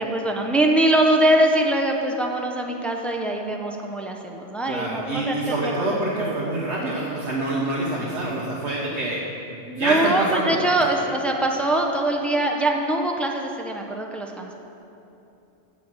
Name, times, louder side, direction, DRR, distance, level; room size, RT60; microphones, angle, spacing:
voice 1, 0.0-6.3 9.7-14.5, right 1 dB, ahead, 1 dB, 0.4 m, -23 dB
voice 2, 4.6-9.2 9.6-10.6, right 2 dB, 70° right, -5 dB, 1.3 m, -26 dB
7.6 x 7.4 x 6.1 m, 2.9 s
omnidirectional pair, 1.2 m